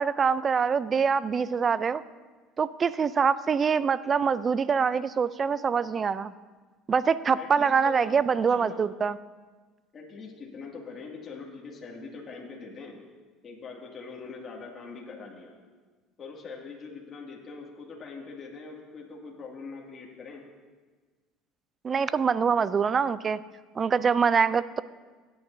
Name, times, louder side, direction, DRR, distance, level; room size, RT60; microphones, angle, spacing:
voice 1, 0.0-2.0 2.6-6.3 6.9-9.2 21.8-23.4 23.8-24.8, right 6 dB, 30° right, 17 dB, 0.3 m, -24 dB
voice 2, 7.3-8.2 8.5-8.8 9.9-13.0 13.4-15.6 16.2-20.4, left 4 dB, 35° left, -2 dB, 2.1 m, -42 dB
16.5 x 9.0 x 2.6 m, 1.4 s
supercardioid pair, 100°, 0 cm